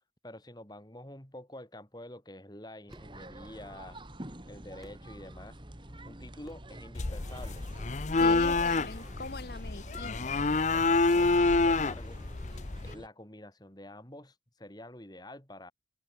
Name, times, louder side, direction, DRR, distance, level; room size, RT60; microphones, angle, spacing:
voice 1, 0.2-4.0 4.4-5.6 6.0-7.6 8.1-8.7 10.7-12.2 12.8-15.7, left 1 dB, 20° left, 4.0 m, -47 dB
sound 1, 2.9-3.2 4.4-4.5 4.8-5.1 6.4-6.8 8.2-8.5 9.9-10.3, equal, ahead, 3.5 m, -57 dB
sound 2, 2.9-13.1, right 1 dB, 25° right, 2.3 m, -48 dB
sound 3, 7.0-12.9, left 3 dB, 40° left, 0.7 m, -27 dB
voice 2, 8.2-10.3, left 3 dB, 60° left, 1.4 m, -42 dB
head